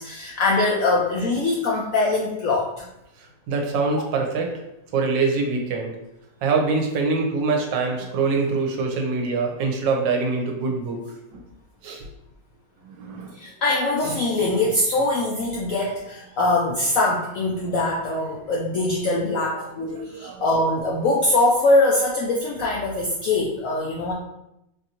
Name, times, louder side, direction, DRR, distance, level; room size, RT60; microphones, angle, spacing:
voice 1, 0.0-2.7 13.3-24.1, left 2 dB, 75° left, -4 dB, 0.7 m, -22 dB
voice 2, 3.5-4.5 4.9-6.0 6.4-11.4 11.8-12.1 12.8-13.3 15.8-15.9 19.5-20.4, right 4 dB, 80° right, 2 dB, 1.3 m, -24 dB
4.4 x 2.5 x 2.8 m, 0.87 s
omnidirectional pair, 1.9 m